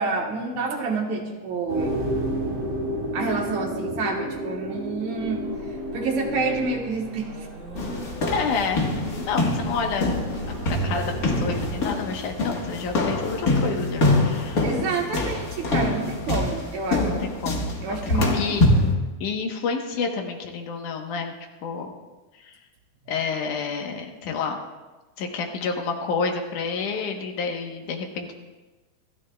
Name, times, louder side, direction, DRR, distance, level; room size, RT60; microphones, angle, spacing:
voice 1, 0.0-2.0 3.1-5.5 5.9-7.3 14.6-17.1 17.8-18.4 18.7-18.8, right 4 dB, 65° right, 1 dB, 2.6 m, -28 dB
sound 1, 1.7-6.7, equal, 45° right, 6.0 m, -30 dB
sound 2, 5.2-11.8, right 2 dB, 90° right, 7.3 m, -37 dB
sound 3, 7.7-18.9, left 2 dB, 45° left, 1.2 m, -25 dB
voice 2, 8.3-8.8 9.2-10.2 10.5-14.7 17.0-18.6 19.2-21.3 21.6-21.9 22.3-22.6 23.1-24.6 25.2-28.3, left 5 dB, 70° left, 3 dB, 2.6 m, -29 dB
27.0 x 13.0 x 2.3 m, 1.2 s
omnidirectional pair, 3.9 m